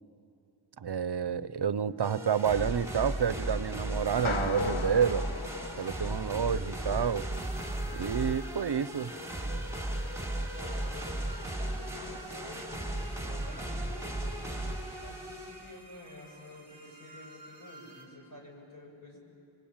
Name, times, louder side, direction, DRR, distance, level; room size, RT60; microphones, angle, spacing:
voice 1, 0.8-5.2 5.8-7.3 7.9-9.1, right 7 dB, 60° right, 16 dB, 0.7 m, -29 dB
sound 1, 2.0-15.7, right 1 dB, 5° right, 3.4 m, -36 dB
sound 2, 4.2-6.7, left 5 dB, 85° left, 1.3 m, -37 dB
sound 3, 7.3-18.0, right 2 dB, 20° left, 3.9 m, -53 dB
voice 2, 10.4-19.2, left 1 dB, 45° left, -1 dB, 6.2 m, -51 dB
26.5 x 24.5 x 8.8 m, 2.7 s
wide cardioid pair, 65°, 47 cm